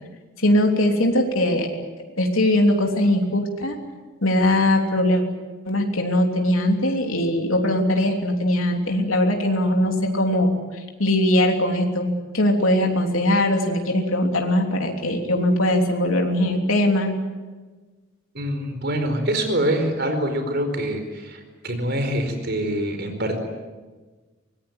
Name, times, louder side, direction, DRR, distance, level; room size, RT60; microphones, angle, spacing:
voice 1, 0.4-1.7 2.2-3.8 4.2-5.2 5.6-10.5 11.0-17.2, left 1 dB, 90° left, 2 dB, 3.2 m, -20 dB
voice 2, 18.3-23.4, right 1 dB, 55° right, 6 dB, 4.7 m, -25 dB
24.5 x 20.0 x 9.6 m, 1.3 s
head